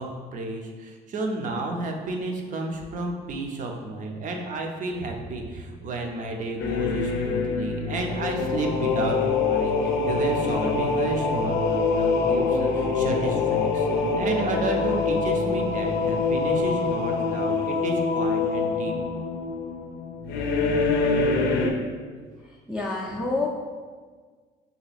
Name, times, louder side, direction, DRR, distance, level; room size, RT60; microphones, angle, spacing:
voice 1, 0.0-18.9, right 2 dB, 50° right, 2 dB, 0.6 m, -31 dB
sound 1, 6.6-21.7, left 4 dB, 80° left, 0.5 m, -25 dB
voice 2, 22.4-23.5, left 3 dB, 5° right, -5 dB, 0.4 m, -29 dB
3.1 x 2.8 x 4.0 m, 1.5 s
cardioid pair, 110°, 17 cm